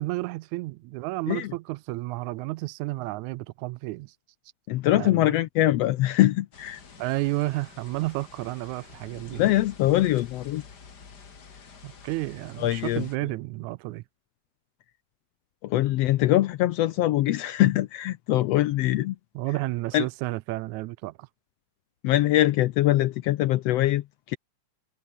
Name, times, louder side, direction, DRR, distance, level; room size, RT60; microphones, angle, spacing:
voice 1, 0.0-4.1 4.9-5.3 7.0-9.4 11.8-14.0 19.4-21.3, right 20 dB, 80° right, 1.9 m, -31 dB
voice 2, 4.7-6.8 9.3-10.6 12.6-13.0 15.6-19.2 19.9-20.0 22.0-24.4, left 15 dB, 75° left, 1.5 m, -23 dB
sound 1, 6.5-13.2, left 5 dB, 35° left, 2.5 m, -49 dB
omnidirectional pair, 3.4 m